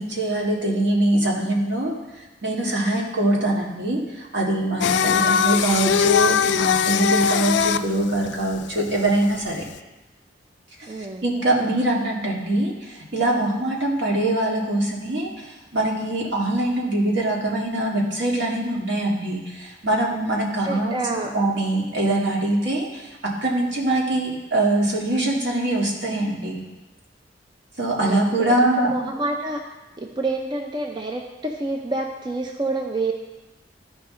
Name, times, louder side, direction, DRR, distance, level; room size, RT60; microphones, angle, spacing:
voice 1, 0.0-2.0 2.4-9.6 10.8-10.9 11.2-26.6 27.8-28.9, right 1 dB, 75° right, -2 dB, 1.9 m, -23 dB
Singing, 4.8-9.8, left 7 dB, 65° left, 0.3 m, -21 dB
voice 2, 10.9-11.3 20.6-21.3 28.0-29.6 30.0-33.1, right 2 dB, 25° right, 2 dB, 0.6 m, -28 dB
14.0 x 5.2 x 3.8 m, 1.1 s
head